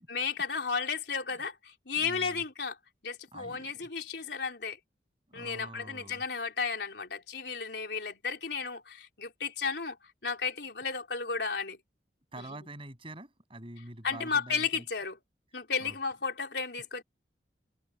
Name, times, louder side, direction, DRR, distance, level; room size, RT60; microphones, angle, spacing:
voice 1, 0.1-2.8 3.0-4.8 5.3-10.0 10.2-11.8 12.4-12.6 14.0-15.2 15.5-17.0, left 5 dB, 70° left, 4.0 m, -33 dB
voice 2, 2.0-2.4 3.3-3.9 5.3-6.2 12.3-14.8 15.8-16.0, right 1 dB, 30° right, 6.9 m, -46 dB
head